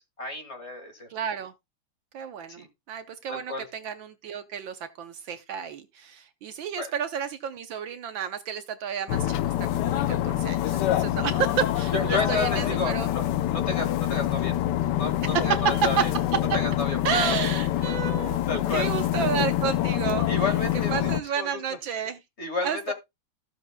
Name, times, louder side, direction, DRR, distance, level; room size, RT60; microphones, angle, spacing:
voice 1, 0.0-1.1 2.5-2.7 3.3-3.7 6.8-6.9 11.9-13.3 13.5-14.6 15.0-16.1 16.5-17.3 18.5-18.9 20.3-21.6 22.4-22.9, left 3 dB, 30° left, 2.0 m, -31 dB
voice 2, 1.1-1.5 2.1-13.1 15.2-16.4 17.0-18.4 18.7-20.3 20.9-22.2 22.6-22.9, right 7 dB, 70° right, 1.4 m, -30 dB
sound 1, 9.1-21.2, left 13 dB, 70° left, 1.0 m, -26 dB
15.0 x 7.2 x 2.2 m
omnidirectional pair, 2.4 m